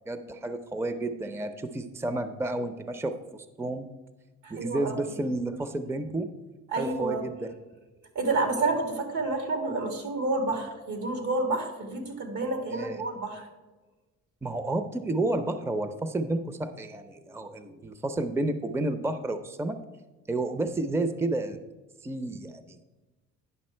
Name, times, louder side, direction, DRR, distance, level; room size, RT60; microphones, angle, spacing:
voice 1, 0.1-3.9 4.5-6.3 6.8-7.5 12.7-13.0 14.4-19.8 20.3-21.6 22.0-22.8, right 2 dB, 10° right, 9 dB, 0.5 m, -31 dB
voice 2, 4.4-5.1 6.7-7.2 8.2-13.5, right 2 dB, 80° right, 3 dB, 2.1 m, -29 dB
9.7 x 6.0 x 4.4 m, 1.2 s
cardioid pair, 90°, 30 cm